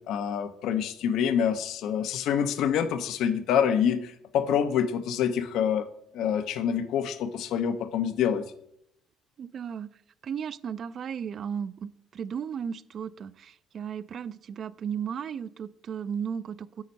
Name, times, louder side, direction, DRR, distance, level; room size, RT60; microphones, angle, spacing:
voice 1, 0.1-5.9 6.1-8.5, left 8 dB, 70° left, 11 dB, 0.6 m, -26 dB
voice 2, 9.4-9.9 10.2-16.8, right 7 dB, 45° right, 17 dB, 0.3 m, -35 dB
8.5 x 4.3 x 5.3 m, 0.72 s
cardioid pair, 115°, 0 cm